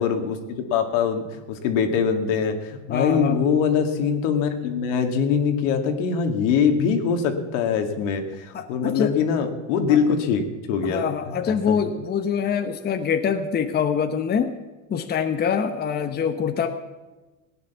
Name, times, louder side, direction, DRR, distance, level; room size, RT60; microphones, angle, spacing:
voice 1, 0.0-11.0 11.5-11.8, left 6 dB, 70° left, 5 dB, 2.2 m, -23 dB
voice 2, 2.9-3.5 8.5-9.1 9.9-10.0 10.8-14.5 14.9-16.7, left 7 dB, 25° left, 7 dB, 1.0 m, -25 dB
17.0 x 9.6 x 7.1 m, 1.2 s
supercardioid pair, 115°, 39 cm